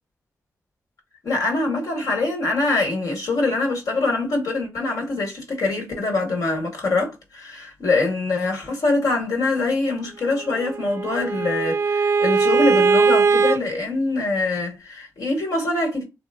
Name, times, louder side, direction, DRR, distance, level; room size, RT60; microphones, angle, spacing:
voice 1, 1.2-16.0, left 2 dB, 75° left, 1.4 m, -24 dB
Bowed string instrument, 10.5-13.6, right 5 dB, 50° right, 0.4 m, -20 dB
3.1 x 2.0 x 3.4 m
cardioid pair, 50°, 6 cm